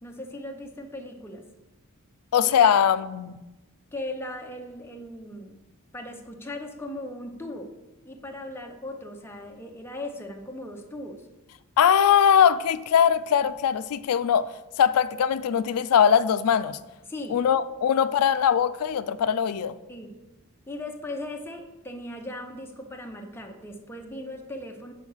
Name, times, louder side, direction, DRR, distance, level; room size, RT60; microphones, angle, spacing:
voice 1, 0.0-1.4 2.4-2.7 3.9-5.6 5.9-7.7 8.0-11.3 17.0-17.4 19.9-20.1 20.7-24.9, left 1 dB, 10° left, 3 dB, 0.7 m, -38 dB
voice 2, 2.3-3.3 11.8-16.8 17.3-19.8, left 8 dB, 80° left, 15 dB, 0.3 m, -21 dB
6.2 x 4.8 x 5.5 m, 1.0 s
head